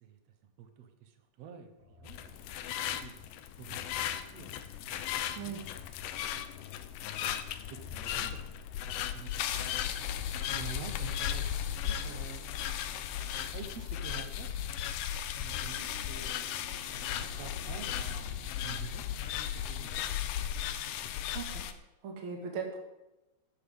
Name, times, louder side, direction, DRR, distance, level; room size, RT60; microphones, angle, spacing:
voice 1, 0.0-2.2 2.7-3.3 3.6-4.9 5.4-5.6 6.3-7.0 7.7-8.5 9.0-9.5 10.5-11.5 11.8-12.4 13.3-19.1 19.5-20.0, right 7 dB, 70° right, 7 dB, 1.6 m, -49 dB
sound 1, 1.8-3.1 3.7-7.0 7.5-9.0 9.5-10.9 11.4-19.4, left 2 dB, 30° left, 4.0 m, -55 dB
sound 2, 2.1-21.7, left 10 dB, 75° left, 2.0 m, -36 dB
Walk footsteps, 9.5-15.3, equal, 5° right, 2.2 m, -60 dB
voice 2, 21.3-21.7 22.0-22.8, right 6 dB, 40° right, 1 dB, 2.2 m, -38 dB
15.0 x 10.5 x 3.7 m, 1.0 s
omnidirectional pair, 4.5 m